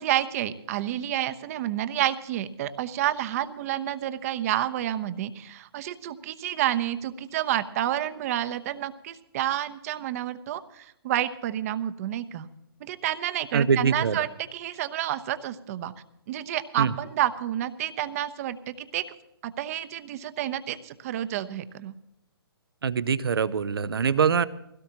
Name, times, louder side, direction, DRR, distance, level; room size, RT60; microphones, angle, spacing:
voice 1, 0.0-12.5 12.8-15.9 16.3-19.0 19.4-21.9, right 12 dB, 35° right, 12 dB, 0.9 m, -29 dB
voice 2, 13.5-14.2 16.8-16.9 22.8-24.5, right 6 dB, 70° right, 16 dB, 0.8 m, -23 dB
21.5 x 17.0 x 2.9 m, 0.83 s
figure-of-eight pair, 135°, 13 cm